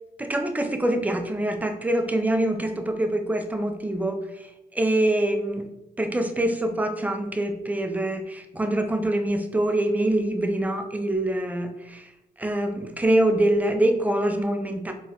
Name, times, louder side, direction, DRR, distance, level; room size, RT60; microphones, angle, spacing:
voice 1, 0.2-4.5 4.7-5.7 6.0-12.1 12.4-14.9, right 1 dB, 10° right, 5 dB, 0.4 m, -25 dB
3.9 x 2.3 x 2.2 m, 0.92 s
cardioid pair, 70°, 18 cm